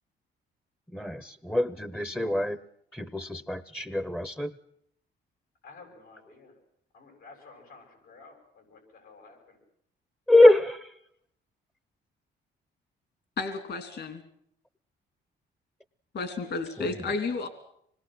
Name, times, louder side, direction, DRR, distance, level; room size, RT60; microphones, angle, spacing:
voice 1, 0.9-2.6 2.9-4.5 10.3-10.9 16.8-17.0, left 1 dB, 5° left, 14 dB, 0.9 m, -23 dB
voice 2, 5.6-6.6 6.9-9.6 16.4-16.9, left 4 dB, 85° left, 3 dB, 7.9 m, -52 dB
voice 3, 13.4-14.2 16.1-17.5, left 4 dB, 60° left, 7 dB, 3.1 m, -32 dB
25.5 x 21.0 x 7.9 m, 0.70 s
cardioid pair, 90°, 20 cm